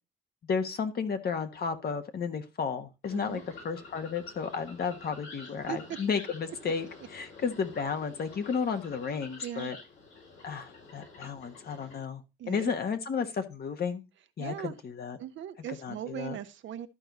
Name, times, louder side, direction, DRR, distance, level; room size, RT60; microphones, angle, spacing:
voice 1, 0.4-9.8 10.4-12.2 12.5-14.0 14.4-15.2 15.8-16.4, left 6 dB, 50° left, 1.4 m, -33 dB
sound 1, 3.0-12.0, left 3 dB, 75° left, 5.7 m, -49 dB
voice 2, 3.1-3.4 5.7-5.8 9.4-9.7 12.4-12.8 14.4-14.7 15.2-16.9, right 10 dB, 70° right, 0.9 m, -38 dB
12.5 x 4.7 x 4.0 m
cardioid pair, 90°, 20 cm